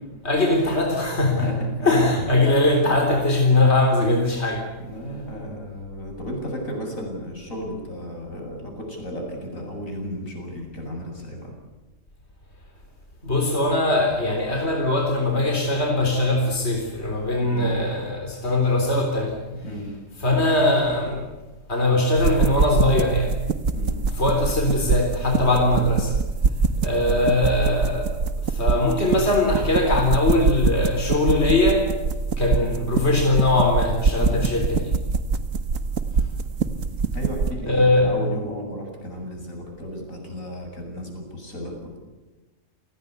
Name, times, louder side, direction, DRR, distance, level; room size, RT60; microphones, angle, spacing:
voice 1, 0.2-4.7 13.2-19.4 20.2-21.3 21.7-23.3 24.1-26.1 26.8-31.9 32.4-35.0 37.6-38.1, left 2 dB, 55° left, 1 dB, 4.2 m, -21 dB
voice 2, 4.9-11.5 17.4-17.7 19.6-19.9 23.7-24.0 34.2-34.4 37.1-42.0, equal, 85° left, 1 dB, 8.3 m, -34 dB
sound 1, 22.2-37.5, right 4 dB, 85° right, 1.8 m, -24 dB
29.5 x 20.0 x 8.3 m, 1.1 s
omnidirectional pair, 1.4 m